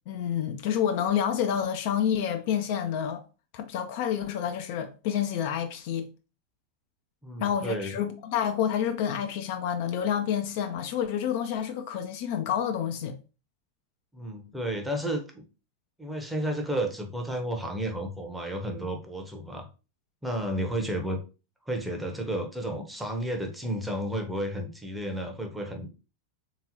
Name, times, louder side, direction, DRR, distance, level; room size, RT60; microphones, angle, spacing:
voice 1, 0.1-3.2 3.5-6.1 7.4-13.2, left 9 dB, 50° left, 0.4 m, -28 dB
voice 2, 7.2-8.0 14.1-15.4 16.0-19.6 20.2-21.2 21.7-25.9, right 1 dB, 5° right, 0.8 m, -32 dB
3.7 x 2.9 x 2.8 m
figure-of-eight pair, 90°, 0 cm